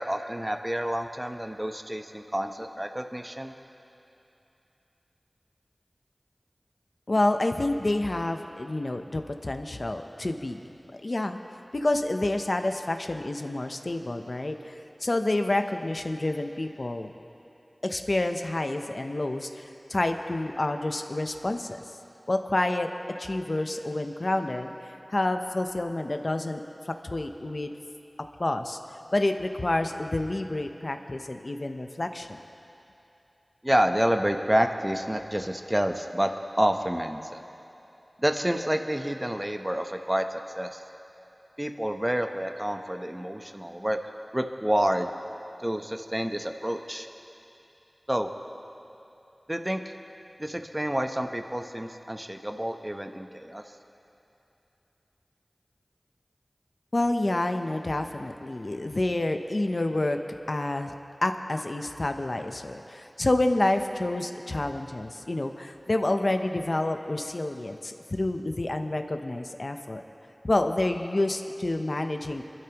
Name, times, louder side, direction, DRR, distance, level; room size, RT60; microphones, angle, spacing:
voice 1, 0.0-3.5 33.6-36.3 36.6-37.4 38.2-40.8 41.6-44.0 44.3-45.1 45.6-47.1 48.1-48.3 49.5-49.9 50.4-53.6, equal, 20° right, 5 dB, 0.9 m, -28 dB
voice 2, 7.1-10.6 11.0-11.4 11.7-17.1 17.8-21.7 22.3-22.9 23.2-26.6 27.0-27.7 28.4-28.8 29.1-32.4 56.9-60.2 60.5-60.9 61.2-70.0 70.4-72.4, left 2 dB, 65° left, 6 dB, 0.7 m, -28 dB
26.5 x 12.0 x 3.0 m, 2.9 s
wide cardioid pair, 45°, 0 cm